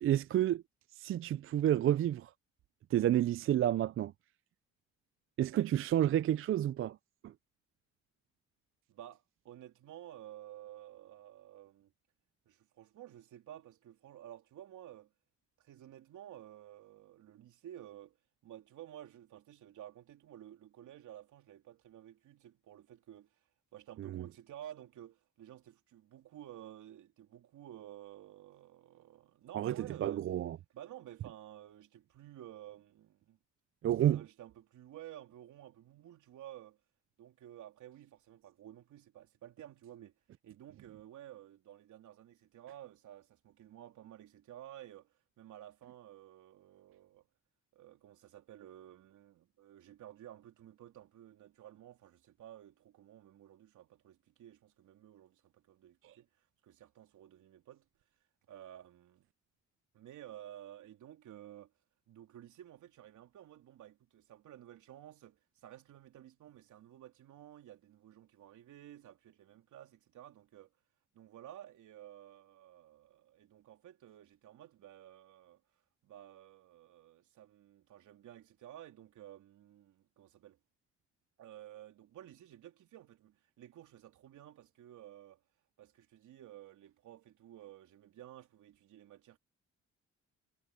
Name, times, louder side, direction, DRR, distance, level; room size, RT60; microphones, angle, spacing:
voice 1, 0.0-0.6 1.0-2.3 2.9-4.1 5.4-7.0 7.2-7.3 24.0-24.2 29.5-29.7 30.0-30.6 33.8-34.2, right 12 dB, 45° right, 0.4 m, -30 dB
voice 2, 8.9-11.9 12.5-15.1 15.6-18.2 18.4-23.4 23.7-30.3 30.7-33.4 34.0-36.8 37.2-40.2 40.4-47.3 47.7-57.9 58.5-59.3 59.9-61.7 62.1-70.7 71.1-75.6 76.0-80.6 81.4-85.4 85.8-89.4, right 12 dB, 75° right, 3.5 m, -53 dB
cardioid pair, 90°, 30 cm